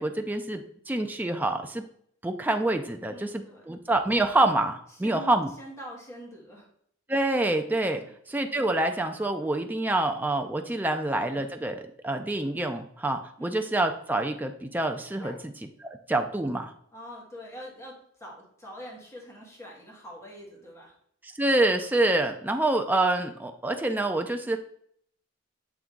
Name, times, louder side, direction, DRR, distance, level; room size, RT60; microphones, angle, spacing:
voice 1, 0.0-1.8 2.2-5.5 7.1-8.0 8.3-16.7 21.4-24.6, right 2 dB, 10° right, 5 dB, 0.4 m, -27 dB
voice 2, 3.1-3.6 5.0-6.7 8.0-8.1 13.4-13.5 15.2-15.5 16.9-20.9, equal, 15° left, -3 dB, 1.7 m, -44 dB
7.2 x 3.4 x 3.7 m, 0.66 s
head